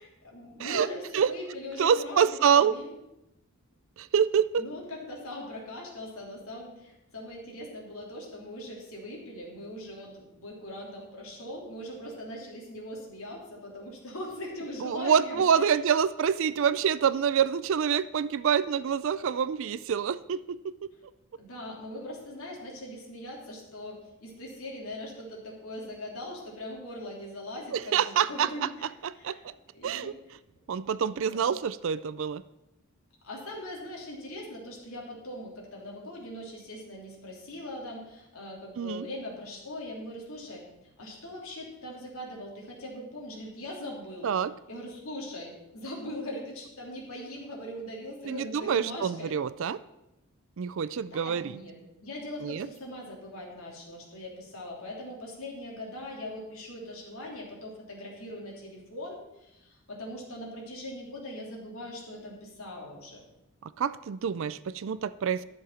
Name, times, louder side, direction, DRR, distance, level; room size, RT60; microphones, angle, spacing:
voice 1, 0.2-2.9 4.6-15.8 21.4-28.9 29.2-29.4 29.7-30.1 31.2-31.5 33.2-40.7 41.0-44.3 44.7-49.3 51.1-63.2, left 1 dB, 70° left, -2 dB, 3.1 m, -41 dB
voice 2, 1.8-2.7 4.0-4.6 14.8-20.7 27.7-28.7 29.0-29.4 29.8-30.1 30.7-32.4 38.8-39.1 44.2-44.5 48.3-49.8 50.6-51.5 52.4-52.7 63.6-65.4, right 7 dB, 60° right, 16 dB, 0.4 m, -26 dB
11.5 x 7.0 x 5.7 m, 0.91 s
head